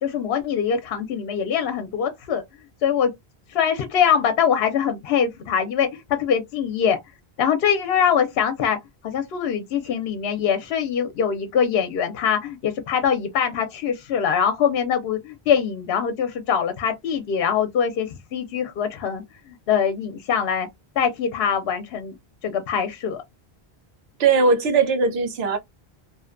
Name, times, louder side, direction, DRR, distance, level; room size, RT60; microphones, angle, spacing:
voice 1, 0.0-2.4 2.8-3.1 3.5-7.0 7.4-8.8 9.0-20.7 21.0-22.1 22.4-23.2, left 7 dB, 75° left, 0.8 m, -23 dB
voice 2, 24.2-25.6, right 4 dB, 80° right, 0.9 m, -19 dB
2.6 x 2.1 x 2.4 m
omnidirectional pair, 1.0 m